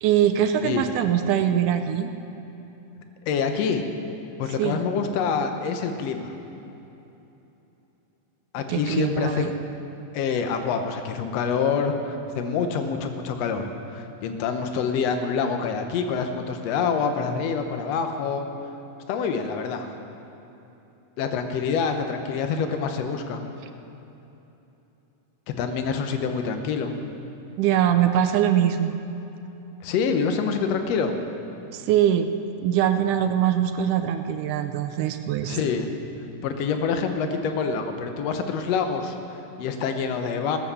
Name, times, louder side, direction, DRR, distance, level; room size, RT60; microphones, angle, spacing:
voice 1, 0.0-2.1 4.6-4.8 8.7-9.5 27.6-29.0 31.7-32.3 32.6-35.6, right 10 dB, 80° right, 8 dB, 2.1 m, -22 dB
voice 2, 3.3-3.8 4.4-6.3 8.5-9.5 10.1-18.5 19.1-19.9 21.2-23.4 25.6-26.9 29.8-31.1 35.5-35.9 36.4-40.6, left 5 dB, 65° left, 6 dB, 1.8 m, -26 dB
17.5 x 7.6 x 6.9 m, 3.0 s
omnidirectional pair, 3.7 m